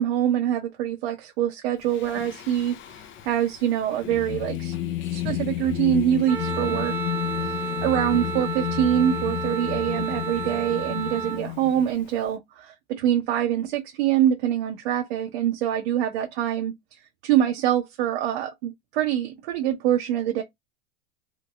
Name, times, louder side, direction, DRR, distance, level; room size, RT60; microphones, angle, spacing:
voice 1, 0.0-4.7 5.1-7.0 7.8-16.7 17.2-20.4, right 10 dB, 65° right, 0.7 m, -24 dB
Singing, 1.9-12.3, left 12 dB, 35° left, 0.6 m, -32 dB
Wind instrument woodwind instrument, 6.3-11.4, right 6 dB, 5° right, 0.8 m, -32 dB
2.9 x 2.8 x 2.3 m
hypercardioid pair, 105°, 33 cm